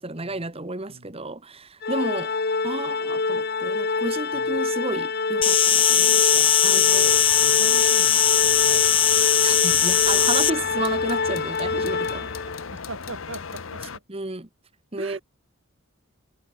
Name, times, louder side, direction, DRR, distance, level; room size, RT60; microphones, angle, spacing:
voice 1, 0.0-2.3 2.6-7.1 9.4-12.3 14.1-14.5 14.9-15.2, right 2 dB, 30° right, 1.6 m, -32 dB
Organ, 1.8-12.7, left 4 dB, 50° left, 1.2 m, -26 dB
Insect, 5.4-10.5, left 9 dB, 25° left, 0.7 m, -19 dB
voice 2, 6.3-9.3 10.1-10.6 12.7-14.0 15.0-15.2, right 2 dB, 70° right, 6.7 m, -41 dB
sound 1, 6.9-14.0, left 5 dB, 70° left, 0.9 m, -37 dB
head